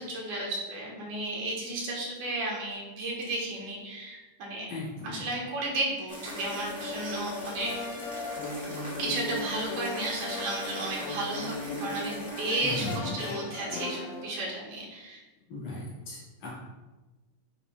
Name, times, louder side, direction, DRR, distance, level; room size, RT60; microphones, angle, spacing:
voice 1, 0.0-4.7 5.0-7.8 9.0-15.2, right 2 dB, 70° right, -3 dB, 2.7 m, -33 dB
voice 2, 4.7-5.3 12.6-13.2 15.5-16.5, left 2 dB, 65° left, -6 dB, 3.1 m, -37 dB
sound 1, 6.1-14.4, left 2 dB, 90° left, 2.6 m, -37 dB
sound 2, 6.1-13.0, equal, 5° right, 0.8 m, -44 dB
9.6 x 5.2 x 2.2 m, 1.1 s
omnidirectional pair, 3.9 m